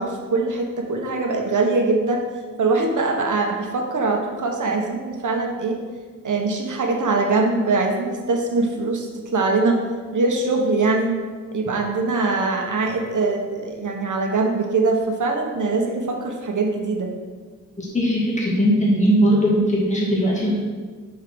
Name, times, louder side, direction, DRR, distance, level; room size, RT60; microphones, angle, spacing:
voice 1, 0.0-2.2 2.6-5.8 6.2-9.8 10.1-11.2 11.5-17.1, right 3 dB, 65° right, 2 dB, 1.2 m, -22 dB
voice 2, 17.8-20.6, equal, 20° left, -6 dB, 2.1 m, -19 dB
4.9 x 4.7 x 6.1 m, 1.5 s
cardioid pair, 60°, 33 cm